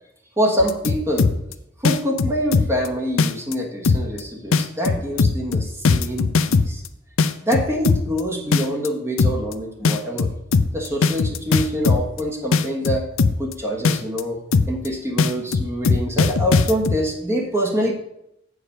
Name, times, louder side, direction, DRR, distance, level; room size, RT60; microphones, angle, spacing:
voice 1, 0.4-1.4 1.8-6.8 7.4-10.3 10.7-13.0 13.4-14.4 14.7-17.9, equal, 15° right, -1 dB, 1.3 m, -25 dB
sound 1, 0.6-1.5 1.8-2.9 3.2-3.5 3.8-4.2 4.5-6.9 7.2-8.2 8.5-8.9 9.2-9.5 9.8-12.2 12.5-13.5 13.8-14.2 14.5-14.9 15.2-17.0, left 4 dB, 85° left, 0.5 m, -19 dB
8.2 x 4.9 x 6.7 m, 0.80 s
head